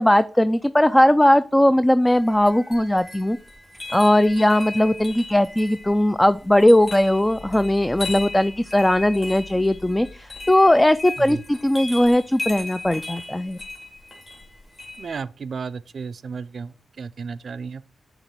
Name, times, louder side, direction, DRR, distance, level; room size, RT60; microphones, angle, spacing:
voice 1, 0.0-3.4 3.9-13.6, left 1 dB, 15° left, 0.4 m, -18 dB
sound 1, 2.1-15.2, left 2 dB, 35° left, 2.9 m, -37 dB
voice 2, 15.0-17.8, right 5 dB, 65° right, 0.4 m, -33 dB
6.7 x 3.0 x 5.9 m
supercardioid pair, 40°, 0 cm